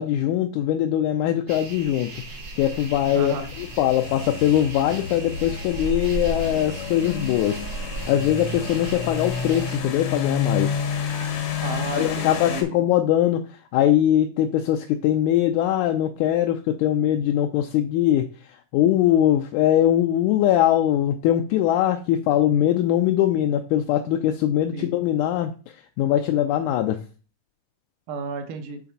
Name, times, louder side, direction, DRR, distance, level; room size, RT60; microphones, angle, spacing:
voice 1, 0.0-2.2 2.6-10.8 11.9-27.0, left 11 dB, 80° left, 6 dB, 1.9 m, -22 dB
sound 1, 1.5-9.8, right 3 dB, 55° right, 1.1 m, -36 dB
sound 2, 2.6-12.6, left 6 dB, 65° left, 1.5 m, -30 dB
voice 2, 3.1-3.5 11.6-12.8 24.7-24.9 28.1-28.8, right 3 dB, 80° right, 6 dB, 2.5 m, -32 dB
8.4 x 3.4 x 4.0 m, 0.36 s
omnidirectional pair, 3.6 m